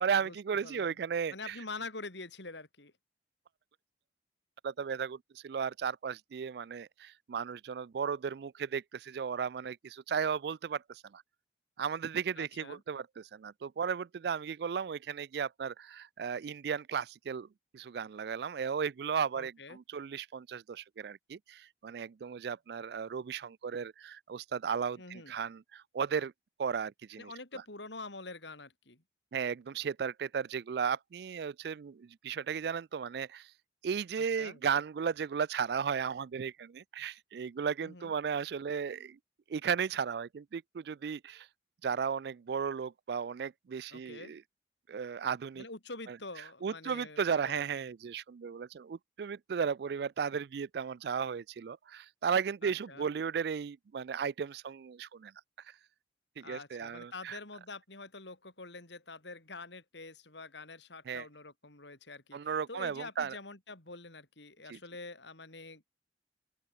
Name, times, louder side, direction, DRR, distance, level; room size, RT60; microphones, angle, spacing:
voice 1, 0.0-1.6 4.6-11.2 11.8-17.5 17.7-26.3 26.6-27.3 29.3-33.5 33.8-39.2 39.5-41.5 41.8-44.4 44.9-45.6 46.1-46.2 46.6-55.3 56.4-57.4 61.1-61.3 62.3-63.4 64.7-64.8, right 6 dB, 60° right, 0.3 m, -35 dB
voice 2, 0.6-1.0 1.3-2.9 12.4-12.8 19.4-19.8 25.0-25.3 27.2-29.0 34.4-34.6 37.8-38.1 43.9-44.3 45.6-47.6 52.6-53.1 56.4-65.8, left 3 dB, 75° left, 3.7 m, -46 dB
open air
head